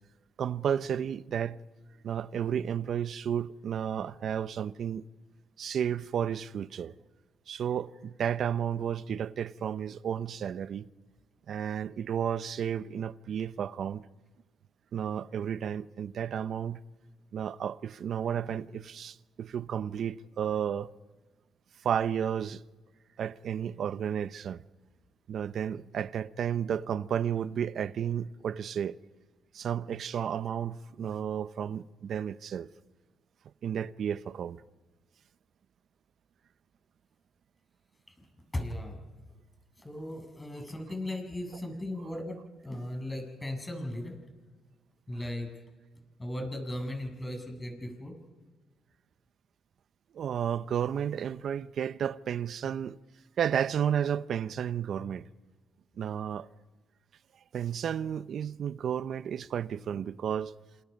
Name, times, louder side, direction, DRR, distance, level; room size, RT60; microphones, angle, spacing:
voice 1, 0.4-1.6 2.0-5.1 5.6-6.9 7.5-10.9 11.5-14.0 14.9-16.8 17.3-20.9 21.8-22.6 23.2-24.6 25.3-29.0 29.5-32.7 33.6-34.6 50.1-53.0 53.4-55.3 56.0-56.5 57.5-60.5, right 8 dB, 60° right, 0.8 m, -32 dB
voice 2, 38.5-39.0 39.8-44.2 45.1-45.5 46.2-48.1, left 1 dB, 15° left, 7.7 m, -37 dB
29.0 x 28.0 x 5.4 m
cardioid pair, 90°, 0 cm